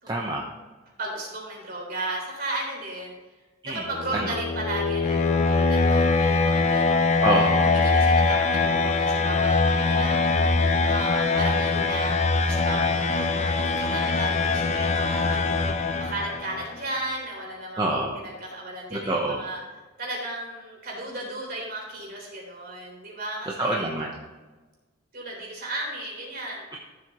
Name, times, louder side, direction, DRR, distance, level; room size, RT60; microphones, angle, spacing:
voice 1, 0.1-0.5 3.6-3.9 4.1-4.4 7.2-7.7 17.8-18.2 18.9-19.4 23.6-24.1 26.7-26.8, right 1 dB, 20° right, -2 dB, 0.9 m, -26 dB
voice 2, 1.0-3.2 3.6-7.0 7.8-10.3 10.9-15.7 16.0-19.6 20.0-23.9 25.1-26.6, right 2 dB, 45° right, -2 dB, 3.6 m, -35 dB
sound 1, 3.8-16.7, left 3 dB, 35° left, 0.6 m, -23 dB
14.0 x 7.6 x 3.1 m, 1.2 s
head